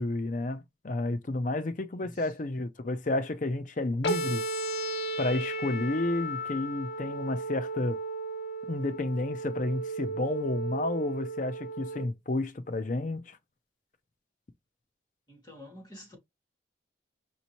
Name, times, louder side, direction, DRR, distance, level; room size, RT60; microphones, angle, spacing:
voice 1, 0.0-4.4 5.2-8.0 8.7-13.4, left 2 dB, 45° left, 0.5 m, -31 dB
voice 2, 2.0-2.3 15.3-16.2, left 1 dB, 20° left, 2.2 m, -49 dB
sound 1, 4.0-12.0, right 2 dB, 70° left, 1.1 m, -34 dB
5.3 x 2.8 x 2.9 m
head